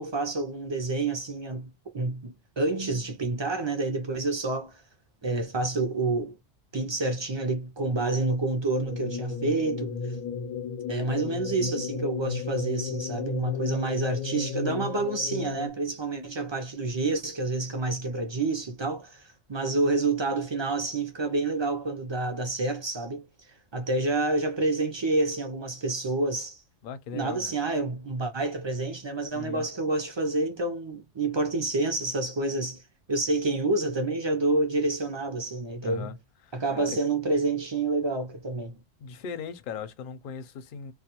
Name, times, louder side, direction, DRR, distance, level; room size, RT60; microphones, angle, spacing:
voice 1, 0.0-1.7 1.9-4.8 5.2-6.3 6.7-9.9 10.9-23.3 23.7-26.6 27.1-32.8 33.1-36.1 36.5-38.8, right 3 dB, 50° right, 0.3 m, -28 dB
sound 1, 8.9-15.7, left 5 dB, 90° left, 1.0 m, -34 dB
voice 2, 26.8-27.5 29.3-29.7 35.8-36.2 36.4-37.0 39.0-40.9, left 6 dB, 60° left, 0.6 m, -38 dB
2.3 x 2.2 x 2.8 m
omnidirectional pair, 1.3 m